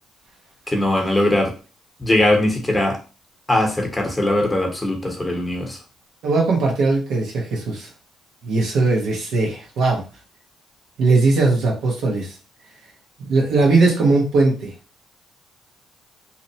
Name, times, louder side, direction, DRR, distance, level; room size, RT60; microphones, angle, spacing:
voice 1, 0.7-1.5 2.0-3.0 3.5-5.8, left 1 dB, 15° left, 1 dB, 0.8 m, -20 dB
voice 2, 6.2-7.9 8.4-10.0 11.0-12.3 13.2-14.7, right 3 dB, 85° right, -1 dB, 1.0 m, -19 dB
2.7 x 2.1 x 2.7 m, 0.34 s
cardioid pair, 90°, 0 cm